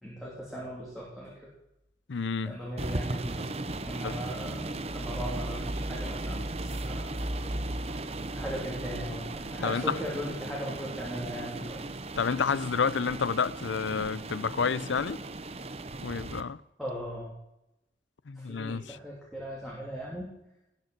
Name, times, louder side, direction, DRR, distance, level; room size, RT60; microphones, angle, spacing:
voice 1, 0.0-1.5 2.4-3.5 3.8-7.3 7.9-8.0 8.3-11.8 16.8-17.3 18.3-20.3, equal, ahead, 3.3 m, -38 dB
voice 2, 2.1-2.6 4.0-4.2 9.6-9.8 12.2-15.2 16.0-16.6 18.3-19.0, left 5 dB, 80° left, 0.6 m, -29 dB
sound 1, 2.8-16.4, right 2 dB, 35° right, 0.8 m, -36 dB
18.5 x 6.9 x 7.9 m
head